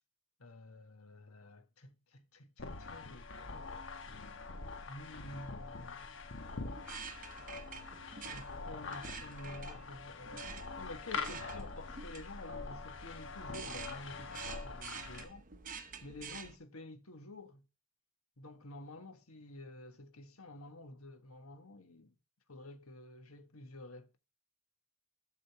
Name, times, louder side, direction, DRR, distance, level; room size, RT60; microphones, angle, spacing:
voice 1, 0.4-3.7 4.9-6.3 8.3-10.5 10.7-15.5 16.0-17.6 18.4-22.1 22.5-24.2, left 1 dB, 85° left, 1.5 m, -50 dB
sound 1, 2.6-15.2, left 4 dB, 60° left, 1.2 m, -44 dB
sound 2, 6.4-16.6, right 6 dB, 35° right, 0.8 m, -49 dB
8.3 x 4.0 x 6.7 m
head